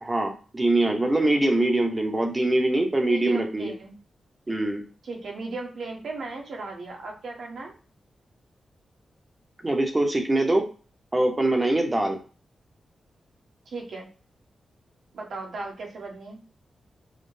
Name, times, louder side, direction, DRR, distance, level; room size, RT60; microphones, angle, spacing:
voice 1, 0.0-3.7 4.5-4.8 9.6-10.7 11.1-12.2, right 2 dB, 20° right, 4 dB, 1.0 m, -23 dB
voice 2, 3.0-3.9 5.0-7.7 13.7-14.1 15.1-16.4, right 3 dB, 70° right, -1 dB, 1.6 m, -36 dB
6.6 x 2.3 x 3.4 m, 0.36 s
wide cardioid pair, 125°, 0 cm